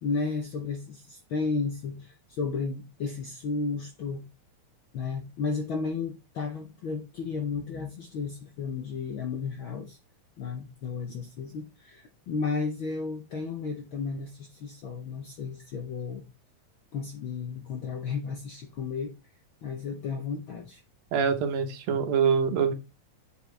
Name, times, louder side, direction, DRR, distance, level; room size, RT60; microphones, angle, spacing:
voice 1, 0.0-4.3 4.9-10.0 10.4-16.2 16.9-19.1 19.6-20.8, left 4 dB, 70° left, 1.2 m, -33 dB
voice 2, 21.1-22.7, right 6 dB, 70° right, 2.2 m, -25 dB
7.4 x 6.6 x 3.3 m
omnidirectional pair, 3.3 m